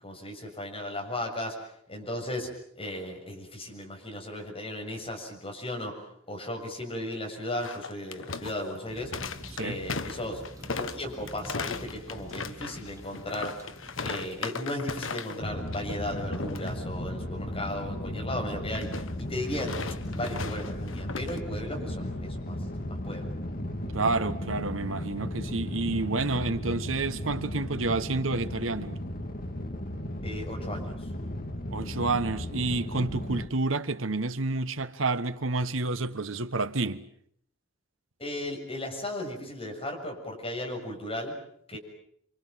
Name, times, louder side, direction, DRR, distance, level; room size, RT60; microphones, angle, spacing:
voice 1, 0.0-6.0 6.3-9.2 9.6-13.6 14.0-18.9 19.2-22.6 22.9-23.4 30.2-30.9 38.2-41.4 41.7-41.8, left 1 dB, 30° left, 7.0 m, -36 dB
sound 1, 7.6-15.5 15.7-16.0 16.3-16.7 18.7-21.4, left 4 dB, 80° left, 1.3 m, -37 dB
sound 2, 8.9-14.5, right 1 dB, 15° right, 1.9 m, -47 dB
sound 3, 15.4-33.5, left 1 dB, 45° left, 2.4 m, -35 dB
voice 2, 23.9-29.0 31.7-37.0, right 3 dB, 85° right, 1.4 m, -29 dB
29.0 x 25.0 x 7.6 m
head